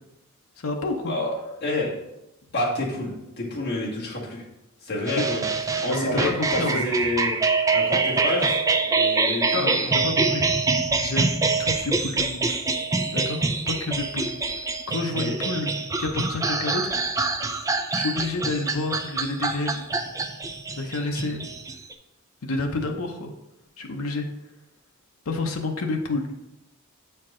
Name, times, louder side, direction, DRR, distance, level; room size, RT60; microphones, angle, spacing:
voice 1, 0.6-1.1 5.1-5.2 5.9-6.8 9.5-10.6 11.0-12.6 13.1-14.3 14.9-15.7 16.0-17.0 17.9-19.8 20.7-21.4 22.4-23.3 23.8-24.3 25.3-26.3, left 3 dB, 75° left, 2 dB, 0.7 m, -29 dB
voice 2, 1.6-1.9 2.5-4.4 4.8-5.4 5.8-7.3 7.7-9.9 15.1-15.3 17.4-17.6, left 1 dB, 50° left, -4 dB, 1.8 m, -28 dB
sound 1, 5.1-21.9, right 3 dB, 15° right, 0.4 m, -25 dB
7.5 x 4.6 x 3.7 m, 0.91 s
head